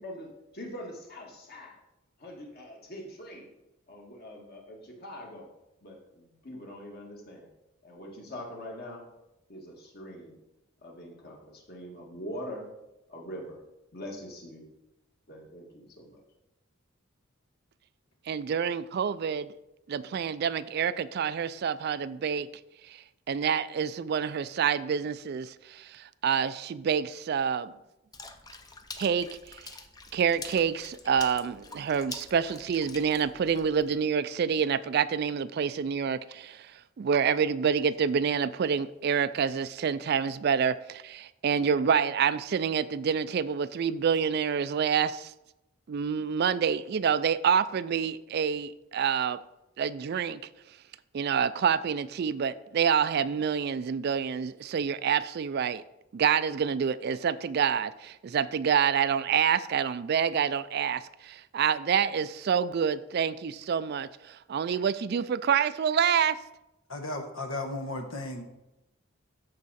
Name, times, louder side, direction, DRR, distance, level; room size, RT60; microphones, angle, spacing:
voice 1, 0.0-1.8 2.2-3.5 3.9-5.5 5.8-7.5 7.8-9.0 9.5-10.4 10.8-12.7 13.1-13.6 13.9-14.7 15.3-16.2, equal, 50° left, 1.9 m, -43 dB
voice 2, 18.3-19.5 19.9-22.5 23.3-27.7 29.0-29.6 30.1-36.7 37.0-45.3 45.9-49.4 49.8-50.4 51.1-55.8 56.1-66.4, right 7 dB, 50° right, 0.3 m, -27 dB
Water / Splash splatter, 28.1-33.9, left 4 dB, 20° left, 0.5 m, -46 dB
voice 3, 66.9-68.4, left 2 dB, 85° left, 1.3 m, -35 dB
13.5 x 4.8 x 4.2 m
head